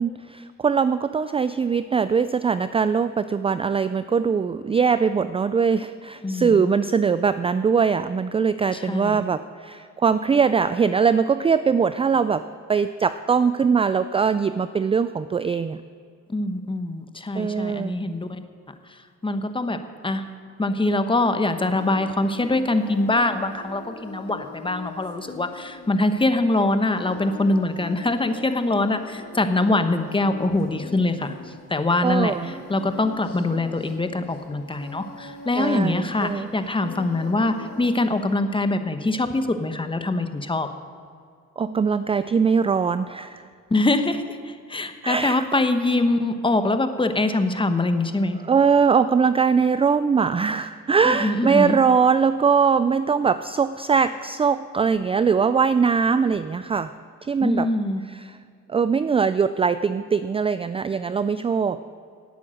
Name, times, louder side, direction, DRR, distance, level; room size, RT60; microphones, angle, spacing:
voice 1, 0.0-12.4 12.7-15.8 17.4-18.1 32.0-32.6 35.6-36.5 41.6-43.4 45.0-45.4 48.4-56.9 57.2-57.7 58.1-58.4 58.7-61.8, right 6 dB, 20° right, 13 dB, 0.3 m, -21 dB
voice 2, 6.2-6.6 8.7-9.2 16.3-18.4 19.2-19.8 20.0-20.2 20.6-31.3 31.7-32.3 32.7-40.7 43.7-48.4 51.0-51.8 57.4-58.0, left 2 dB, 15° left, 8 dB, 1.1 m, -23 dB
Singing, 21.7-38.4, left 5 dB, 55° left, 2.4 m, -42 dB
18.0 x 8.5 x 6.4 m, 2.3 s
cardioid pair, 90°, 30 cm